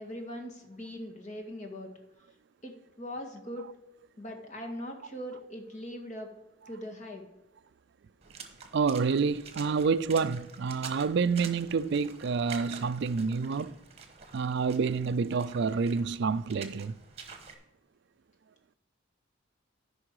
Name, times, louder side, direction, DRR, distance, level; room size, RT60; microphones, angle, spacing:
voice 1, 0.0-1.9 2.6-3.7 4.2-6.3 6.7-7.2, equal, 40° left, 1.8 m, -40 dB
Water / Splash splatter, 8.2-17.5, right 5 dB, 30° right, 1.2 m, -48 dB
voice 2, 8.7-13.7 14.3-17.0, right 5 dB, 60° right, 0.4 m, -28 dB
13.5 x 5.5 x 4.7 m
head